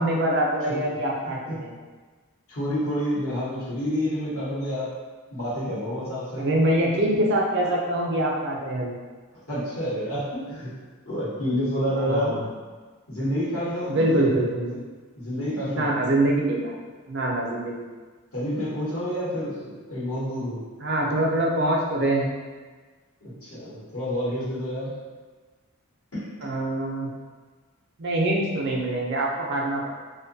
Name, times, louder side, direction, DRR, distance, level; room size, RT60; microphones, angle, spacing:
voice 1, 0.0-1.7 6.4-8.9 12.0-12.4 13.9-14.7 15.7-16.8 17.1-17.9 20.8-22.3 26.4-27.1 28.0-29.9, right 1 dB, 50° right, -1 dB, 0.4 m, -24 dB
voice 2, 1.2-1.6 2.5-4.9 5.3-6.5 9.3-10.7 11.0-12.4 13.1-14.3 14.7-14.8 15.1-15.9 18.3-20.6 23.2-25.0 26.1-26.4, equal, 75° left, -9 dB, 1.0 m, -29 dB
2.5 x 2.2 x 2.6 m, 1.4 s
head